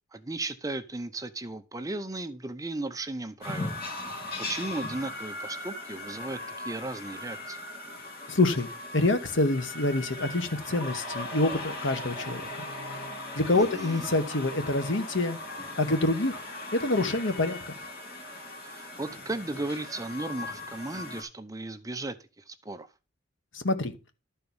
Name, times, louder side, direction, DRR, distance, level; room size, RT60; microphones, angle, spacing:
voice 1, 0.1-3.8 4.5-7.6 13.5-14.1 18.7-22.2 22.5-22.9, right 2 dB, 15° right, 0.7 m, -35 dB
sound 1, 3.4-21.2, left 2 dB, 50° left, 3.2 m, -39 dB
voice 2, 8.3-8.7 8.9-12.4 13.3-15.4 15.8-16.4 16.7-17.6 23.5-23.9, left 2 dB, 70° left, 1.3 m, -26 dB
12.5 x 4.6 x 5.4 m
head